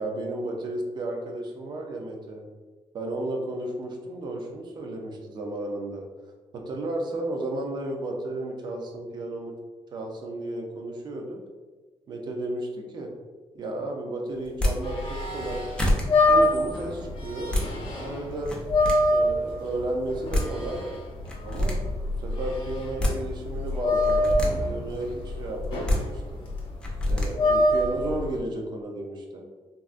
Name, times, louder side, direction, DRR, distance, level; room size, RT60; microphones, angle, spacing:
voice 1, 0.0-2.4 2.9-6.1 6.5-9.5 9.9-11.4 12.1-13.1 13.5-15.7 16.3-17.6 18.0-18.6 19.1-20.9 21.4-21.9 22.2-24.3 24.6-26.2 27.1-29.5, right 1 dB, 45° right, 2 dB, 0.5 m, -33 dB
sound 1, 14.4-14.7 15.4-15.5 15.8-16.0 17.2-17.7 18.4-18.9 20.0-20.1 20.3-20.5 21.3-21.7 22.7-23.1 24.0-24.5 25.6-26.0 26.8-27.3, left 1 dB, 10° left, 0.5 m, -25 dB
sound 2, 14.8-28.4, left 1 dB, 50° left, 0.7 m, -26 dB
3.5 x 2.1 x 2.4 m, 1.3 s
cardioid pair, 160°, 11 cm